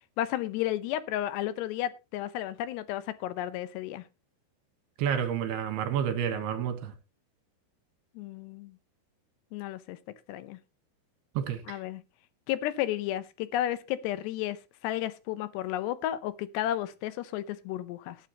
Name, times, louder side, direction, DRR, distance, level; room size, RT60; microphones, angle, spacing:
voice 1, 0.2-4.0 8.2-8.7 9.5-10.0 10.3-10.6 11.7-12.0 12.5-14.6 14.8-18.2, left 13 dB, 80° left, 2.9 m, -32 dB
voice 2, 5.0-6.9 11.4-11.8, right 8 dB, 75° right, 3.2 m, -30 dB
18.0 x 8.8 x 3.0 m
omnidirectional pair, 4.9 m